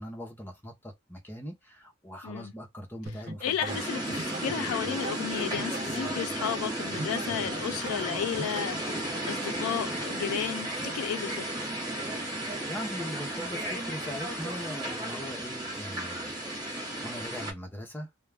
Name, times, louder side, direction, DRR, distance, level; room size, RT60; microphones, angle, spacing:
voice 1, 0.0-4.2 12.6-16.3 17.0-18.1, equal, 10° left, 0.6 m, -40 dB
sound 1, 3.1-8.7, right 2 dB, 50° right, 0.7 m, -41 dB
voice 2, 3.4-11.5, left 9 dB, 90° left, 0.3 m, -33 dB
sound 2, 3.7-17.5, right 1 dB, 20° right, 1.0 m, -34 dB
2.2 x 2.1 x 3.3 m
head